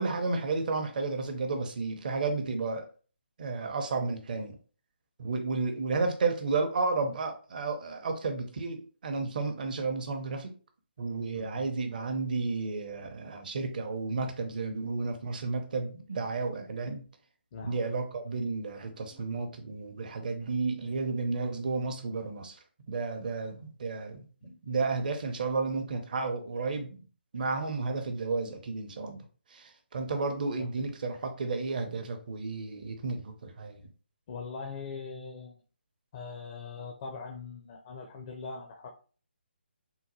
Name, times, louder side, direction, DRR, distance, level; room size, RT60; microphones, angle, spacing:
voice 1, 0.0-2.9 3.4-4.6 5.2-10.5 11.0-17.0 17.6-22.6 22.9-27.0 27.3-29.2 29.5-33.9, right 3 dB, 50° right, 6 dB, 0.7 m, -32 dB
voice 2, 11.3-11.7 17.5-17.8 19.1-19.4 24.4-24.6 30.6-30.9 34.3-35.6 36.1-39.0, left 5 dB, 30° left, 3 dB, 0.4 m, -42 dB
3.7 x 2.1 x 2.9 m, 0.38 s
figure-of-eight pair, 150°, 6 cm